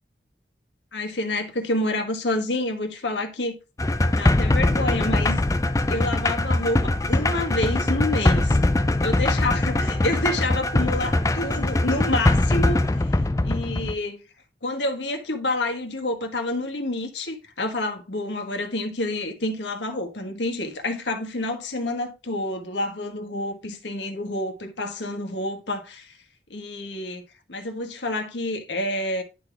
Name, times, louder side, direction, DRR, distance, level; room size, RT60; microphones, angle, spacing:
voice 1, 0.9-3.6 4.1-5.4 5.9-8.6 9.0-14.2 14.6-26.2 26.5-27.2 27.5-29.2, left 2 dB, 90° left, 1.3 m, -28 dB
sound 1, 3.8-14.0, left 2 dB, 20° left, 0.4 m, -22 dB
10.5 x 4.0 x 3.3 m
head